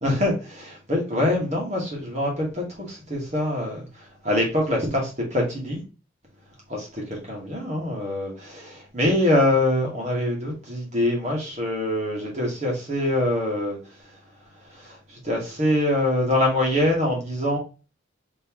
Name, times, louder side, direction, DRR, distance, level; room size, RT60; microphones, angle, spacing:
voice 1, 0.0-5.8 6.7-13.8 14.7-17.6, left 1 dB, 35° right, -1 dB, 1.3 m, -24 dB
3.7 x 3.0 x 2.9 m, 0.33 s
head